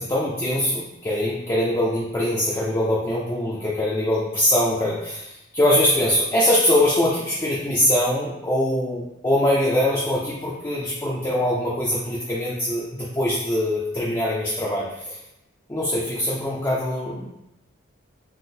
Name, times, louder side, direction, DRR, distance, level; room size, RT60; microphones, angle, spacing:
voice 1, 0.0-15.2 15.7-17.3, left 1 dB, 15° left, -7 dB, 0.4 m, -23 dB
3.6 x 2.5 x 2.6 m, 0.90 s
head